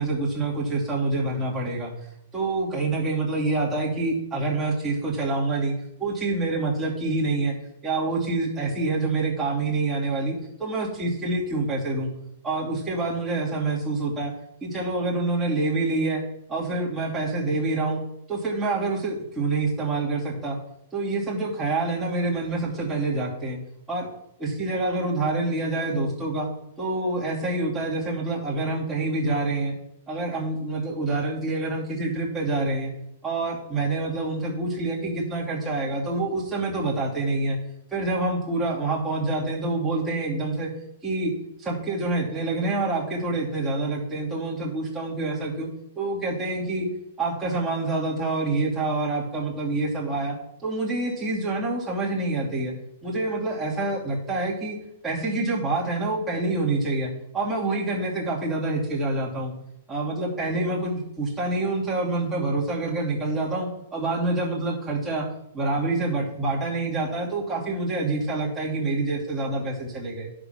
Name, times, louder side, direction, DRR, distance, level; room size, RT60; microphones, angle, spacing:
voice 1, 0.0-1.9 2.3-7.5 7.8-12.1 12.4-14.3 14.6-16.2 16.5-18.0 18.3-20.6 20.9-23.6 23.9-24.1 24.4-26.5 26.8-29.7 30.1-32.9 33.2-37.6 37.9-40.7 41.0-41.3 41.6-45.7 46.0-46.9 47.2-50.4 50.6-52.7 53.0-54.8 55.0-59.5 59.9-65.3 65.5-70.3, right 2 dB, 10° right, -6 dB, 2.8 m, -27 dB
10.5 x 5.2 x 5.8 m, 0.78 s
hypercardioid pair, 120°, 0 cm